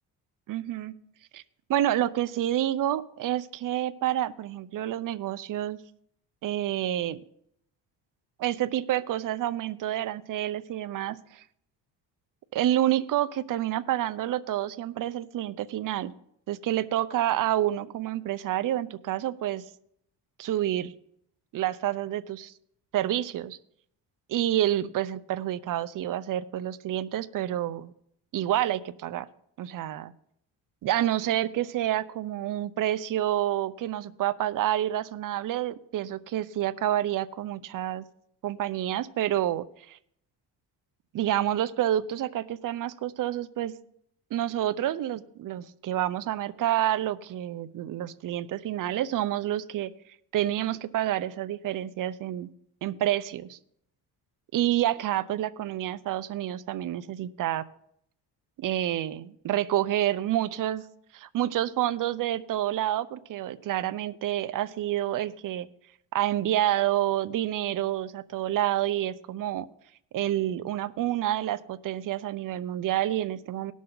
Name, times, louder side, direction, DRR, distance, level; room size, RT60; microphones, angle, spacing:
voice 1, 0.5-0.9 1.3-1.4 1.7-5.8 6.4-7.2 8.4-11.4 12.5-16.1 16.5-19.6 20.4-20.9 21.5-22.5 22.9-23.6 24.3-27.9 28.3-29.3 29.6-30.1 30.8-38.0 38.4-40.0 41.1-43.7 44.3-49.9 50.3-52.5 52.8-53.6 54.5-57.6 58.6-60.8 61.1-65.7 66.1-69.7 70.1-73.7, right 12 dB, 50° right, 13 dB, 0.7 m, -28 dB
18.5 x 6.3 x 3.9 m, 0.70 s
cardioid pair, 125°, 41 cm